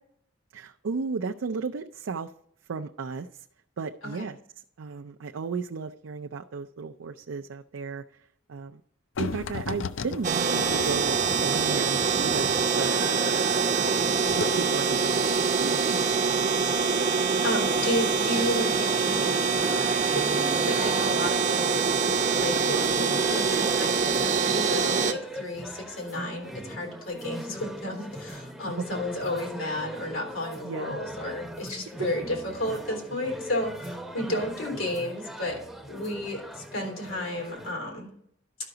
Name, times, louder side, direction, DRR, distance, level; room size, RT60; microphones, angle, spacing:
voice 1, 0.5-2.3 2.7-3.4 3.8-4.4 4.8-8.0 8.5-8.8 9.2-13.0 14.4-15.3 15.6-16.2 23.8-24.5 28.8-28.9 30.6-31.0 31.7-31.8 34.3-34.4, right 4 dB, 80° right, 3 dB, 0.5 m, -34 dB
sound 1, 9.2-14.0 14.3-14.4, left 4 dB, 75° left, 0.5 m, -36 dB
sound 2, 10.2-25.1, right 5 dB, 40° right, 0.6 m, -24 dB
voice 2, 17.4-35.6 35.9-38.1, left 1 dB, 90° left, 1 dB, 3.4 m, -33 dB
sound 3, 18.2-37.7, equal, ahead, 0.7 m, -40 dB
12.0 x 5.7 x 3.8 m, 0.68 s
head